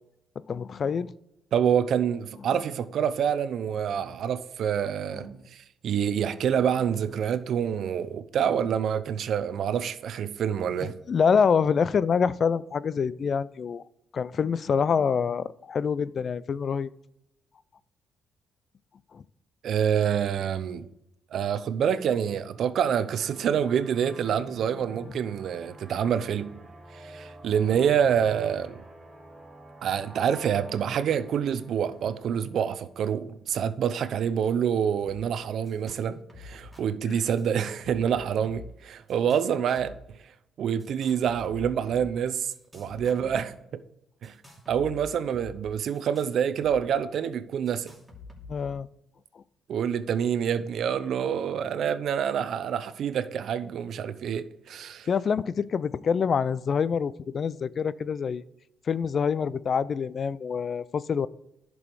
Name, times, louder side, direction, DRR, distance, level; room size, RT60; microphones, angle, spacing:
voice 1, 0.5-1.1 10.8-13.8 14.1-16.9 19.1-19.2 37.1-37.2 48.5-48.9 55.1-58.4 58.9-61.3, left 6 dB, 50° left, 0.4 m, -26 dB
voice 2, 1.5-10.9 19.6-20.9 21.3-26.6 26.9-28.8 29.8-39.9 40.6-43.8 44.2-44.3 44.7-47.9 49.7-55.1, right 8 dB, 70° right, 0.7 m, -27 dB
sound 1, 22.4-32.7, right 1 dB, 30° right, 1.9 m, -49 dB
sound 2, 35.0-35.2 35.4-36.0 36.3-36.8 37.4-38.8 39.1-40.0 40.8-42.1 42.5-43.6 44.2-46.8 47.0-47.1 47.7-48.7, left 3 dB, ahead, 2.8 m, -48 dB
11.0 x 6.2 x 4.8 m
cardioid pair, 90°, 0 cm